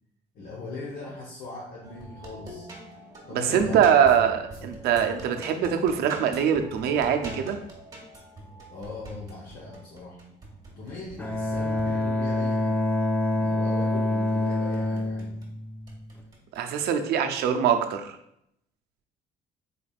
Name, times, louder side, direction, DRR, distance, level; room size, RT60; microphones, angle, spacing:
voice 1, 0.3-2.7 3.3-3.8 8.7-10.2 10.8-12.8 13.3-15.4, left 3 dB, 65° left, -5 dB, 0.9 m, -40 dB
sound 1, 1.8-12.5 14.3-15.5 15.9-16.9 17.5-17.8, right 2 dB, 20° right, 1.1 m, -43 dB
voice 2, 3.3-7.6 16.5-18.2, right 8 dB, 75° right, 6 dB, 0.5 m, -23 dB
Bowed string instrument, 11.2-16.2, left 1 dB, 10° left, 0.4 m, -26 dB
4.1 x 3.3 x 2.3 m, 0.74 s
cardioid pair, 110°, 17 cm